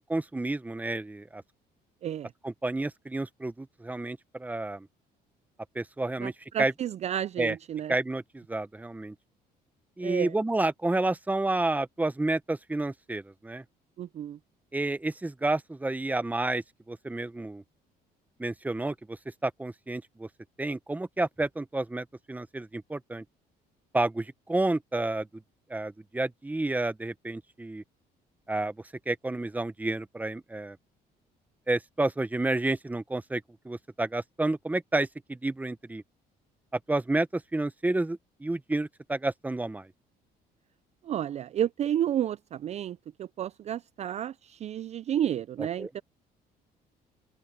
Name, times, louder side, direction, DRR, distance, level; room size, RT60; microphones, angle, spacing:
voice 1, 0.0-1.4 2.4-4.9 5.7-6.3 6.6-6.7 7.4-7.5 7.9-9.1 10.0-13.6 14.7-17.6 18.4-19.2 19.4-20.3 20.6-23.2 23.9-25.3 25.7-27.8 28.5-28.7 29.1-30.8 31.7-36.0 36.9-39.9 45.8-45.9, right 2 dB, 10° right, 1.0 m, -30 dB
voice 2, 6.2-7.9 10.0-10.3 14.0-14.4 41.0-46.0, right 10 dB, 40° right, 0.4 m, -31 dB
open air
cardioid pair, 110°, 17 cm